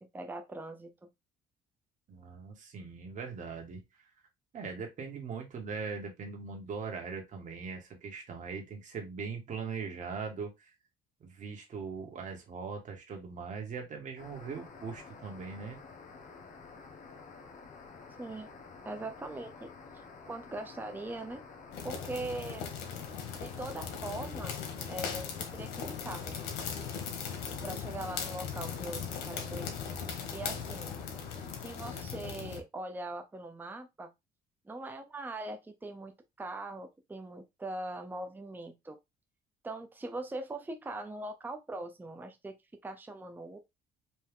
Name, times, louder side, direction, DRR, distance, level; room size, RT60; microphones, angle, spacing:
voice 1, 0.1-1.1 18.2-18.5 18.8-19.7 20.3-21.4 21.8-22.7 23.3-24.6 24.9-26.4 27.6-29.7 30.3-31.0 31.6-34.1 34.7-39.0 39.6-42.5 42.8-43.6, right 2 dB, 10° right, 0.7 m, -41 dB
voice 2, 2.1-3.8 4.5-10.7 11.2-15.8, right 5 dB, 45° right, 1.9 m, -40 dB
sound 1, 14.2-32.0, left 4 dB, 50° left, 1.2 m, -50 dB
sound 2, 21.7-32.6, left 7 dB, 85° left, 1.3 m, -39 dB
4.4 x 2.8 x 3.7 m
cardioid pair, 110°, 17 cm